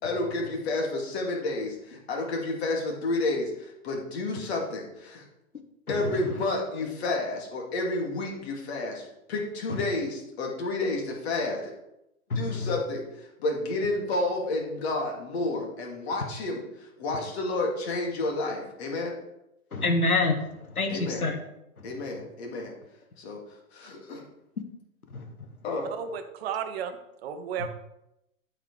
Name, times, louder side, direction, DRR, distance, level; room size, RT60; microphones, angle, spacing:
voice 1, 0.0-5.2 5.9-11.7 12.4-13.0 13.4-16.6 17.0-19.1 20.9-21.2 21.8-22.7 23.2-23.4 23.7-24.2 25.6-25.9, left 2 dB, 50° left, 1 dB, 2.3 m, -30 dB
voice 2, 5.9-6.4 9.7-9.8 12.3-12.8 19.7-21.4 21.8-22.0 25.1-25.5, left 3 dB, 85° left, 6 dB, 1.3 m, -28 dB
voice 3, 25.8-26.9 27.2-27.7, right 7 dB, 45° right, 8 dB, 1.0 m, -33 dB
12.0 x 4.8 x 3.3 m, 0.85 s
figure-of-eight pair, 115°, 42 cm